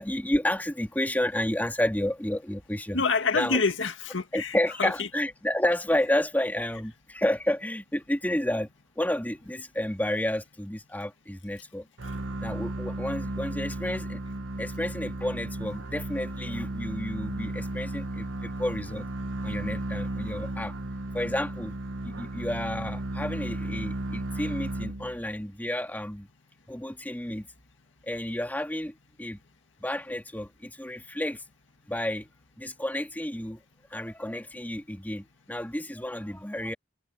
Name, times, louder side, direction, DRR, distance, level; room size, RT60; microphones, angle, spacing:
voice 1, 0.0-3.0 3.3-3.6 4.3-8.7 9.0-11.9 12.4-14.2 14.6-19.1 19.4-20.7 21.1-21.8 22.0-26.3 26.7-27.5 28.0-29.4 29.8-31.4 31.9-32.3 32.6-33.6 33.9-36.7, left 1 dB, 10° left, 2.7 m, -31 dB
voice 2, 2.9-5.1, left 4 dB, 75° left, 2.1 m, -27 dB
sound 1, 12.0-25.4, right 1 dB, 85° right, 1.5 m, -34 dB
head